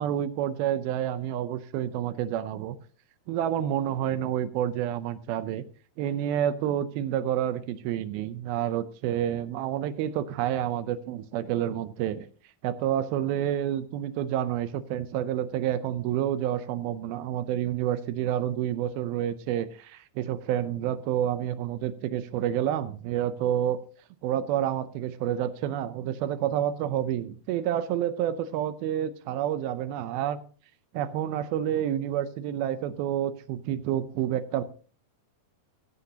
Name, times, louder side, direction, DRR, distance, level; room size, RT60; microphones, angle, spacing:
voice 1, 0.0-2.8 3.3-5.6 6.0-12.3 12.6-23.8 24.2-30.4 30.9-34.6, right 11 dB, 80° right, 14 dB, 2.4 m, -29 dB
16.0 x 14.0 x 2.8 m, 0.40 s
omnidirectional pair, 4.7 m